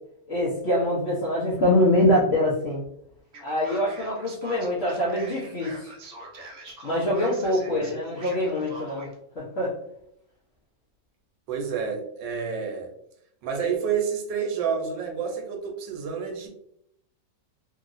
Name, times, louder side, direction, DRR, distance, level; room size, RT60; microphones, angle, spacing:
voice 1, 0.3-2.8 3.4-5.9 6.8-9.1 9.3-9.7, left 1 dB, 55° left, -7 dB, 0.7 m, -24 dB
Male speech man speaking, 3.3-9.1, right 1 dB, 55° right, 0.9 m, -44 dB
voice 2, 11.5-12.9 13.4-16.5, right 6 dB, 85° right, 3 dB, 1.3 m, -29 dB
2.9 x 2.8 x 2.5 m, 0.75 s
omnidirectional pair, 1.9 m